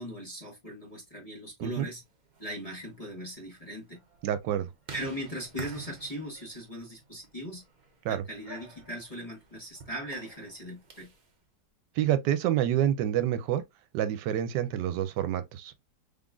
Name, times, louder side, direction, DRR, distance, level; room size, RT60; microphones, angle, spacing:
voice 1, 0.0-2.0 2.4-4.0 4.9-7.6 8.1-11.1, equal, 25° left, 1.0 m, -39 dB
sound 1, 2.2-11.3, right 4 dB, 45° right, 0.6 m, -49 dB
voice 2, 4.2-4.7 8.0-8.2 12.0-13.6 13.9-15.7, right 11 dB, 85° right, 1.2 m, -28 dB
3.8 x 3.6 x 2.3 m
omnidirectional pair, 1.8 m